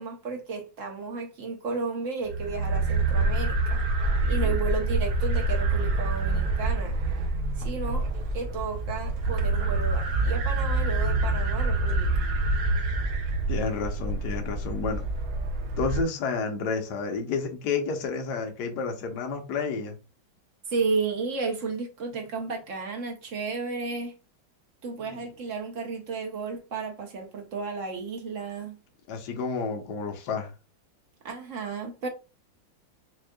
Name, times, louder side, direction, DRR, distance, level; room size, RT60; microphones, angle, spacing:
voice 1, 0.0-3.8 4.3-7.0 7.6-8.1 8.3-12.3 20.7-24.1 24.8-28.8 31.2-32.1, right 4 dB, 60° right, 0.8 m, -33 dB
sound 1, 2.3-16.0, right 2 dB, 85° right, 1.5 m, -26 dB
voice 2, 13.5-15.0 15.8-20.0 29.1-30.5, left 4 dB, 65° left, 1.3 m, -30 dB
6.3 x 2.4 x 2.2 m
omnidirectional pair, 2.1 m